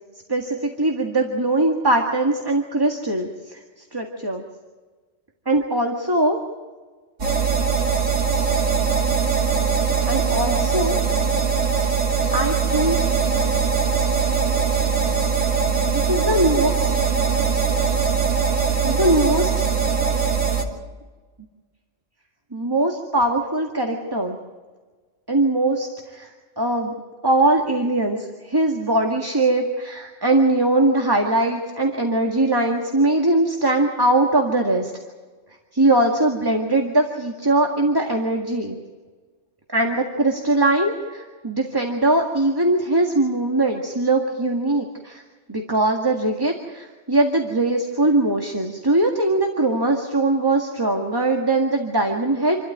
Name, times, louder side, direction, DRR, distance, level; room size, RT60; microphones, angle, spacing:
voice 1, 0.3-4.4 5.5-6.4 10.1-11.0 12.3-13.0 15.9-16.7 18.8-19.6 22.5-24.4 25.3-26.3 26.6-26.9 27.2-34.9 35.7-38.8 39.7-45.2 45.5-52.6, right 2 dB, 20° right, 2 dB, 1.9 m, -21 dB
sound 1, 7.2-20.6, right 6 dB, 75° right, 3.0 m, -21 dB
28.0 x 13.0 x 9.3 m, 1.4 s
omnidirectional pair, 1.3 m